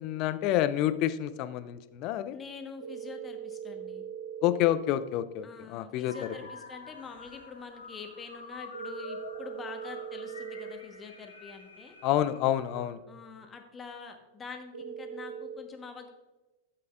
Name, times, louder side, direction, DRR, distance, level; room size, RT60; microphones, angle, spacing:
voice 1, 0.0-2.4 4.4-6.1 12.0-13.0, left 12 dB, 40° left, 14 dB, 0.5 m, -28 dB
voice 2, 2.3-4.0 5.4-12.0 13.1-16.1, left 5 dB, 20° left, 5 dB, 1.3 m, -45 dB
sound 1, 2.8-4.7 8.7-10.7 14.7-15.6, right 8 dB, 65° right, 0.9 m, -40 dB
sound 2, 6.0-12.9, left 3 dB, 75° left, 1.5 m, -47 dB
12.5 x 7.6 x 2.5 m, 1.1 s
figure-of-eight pair, 90°, 0 cm